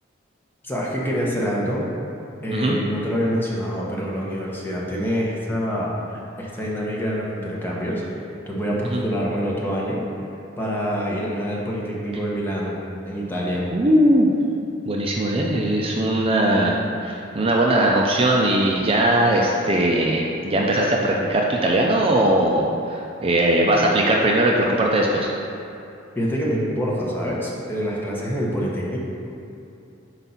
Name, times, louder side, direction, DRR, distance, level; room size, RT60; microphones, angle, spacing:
voice 1, 0.6-1.8 2.4-8.0 8.5-10.0 10.6-12.8 13.0-13.6 26.2-29.0, equal, 10° left, -5 dB, 0.9 m, -26 dB
voice 2, 13.7-14.3 14.9-16.8 17.0-25.3, right 1 dB, 30° right, -1 dB, 0.4 m, -19 dB
4.5 x 4.0 x 5.7 m, 2.8 s
head